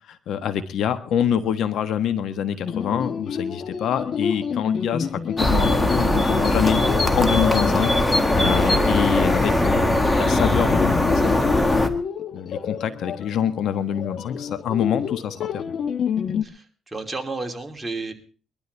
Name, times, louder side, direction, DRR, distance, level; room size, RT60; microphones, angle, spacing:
voice 1, 0.1-6.8 7.1-7.9 8.3-9.8 10.1-11.9 12.3-15.6, left 9 dB, 75° left, 10 dB, 1.4 m, -26 dB
sound 1, 2.7-16.4, left 7 dB, 60° left, 1.0 m, -30 dB
sound 2, 5.4-11.9, left 1 dB, 15° left, 1.8 m, -20 dB
voice 2, 16.9-18.1, right 3 dB, 15° right, 2 dB, 3.0 m, -31 dB
22.5 x 12.5 x 3.4 m, 0.39 s
cardioid pair, 90°, 0 cm